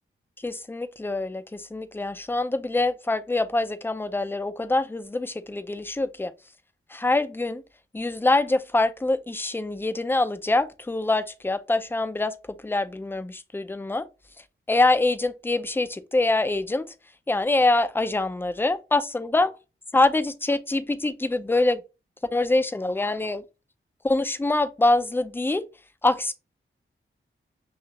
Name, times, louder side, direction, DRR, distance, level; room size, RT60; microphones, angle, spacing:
voice 1, 0.4-6.3 6.9-7.6 7.9-14.1 14.7-16.9 17.3-19.5 19.9-21.8 22.3-23.4 24.0-25.6 26.0-26.3, left 2 dB, 10° left, 0.4 m, -24 dB
5.9 x 2.4 x 2.8 m
wide cardioid pair, 110°, 21 cm